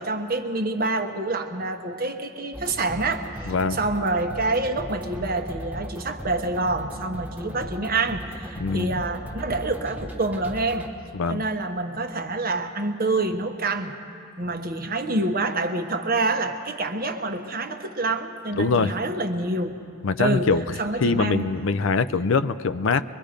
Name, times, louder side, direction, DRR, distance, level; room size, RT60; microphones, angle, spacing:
voice 1, 0.0-10.9 11.3-13.9 14.4-19.8 20.2-21.5, right 2 dB, 45° right, 5 dB, 1.1 m, -27 dB
sound 1, 2.5-10.9, equal, 5° right, 1.1 m, -38 dB
voice 2, 3.5-3.8 8.6-8.9 11.1-11.4 18.6-18.9 20.0-20.6 21.0-23.0, left 4 dB, 65° left, 14 dB, 0.5 m, -23 dB
23.5 x 23.0 x 5.1 m, 2.5 s
head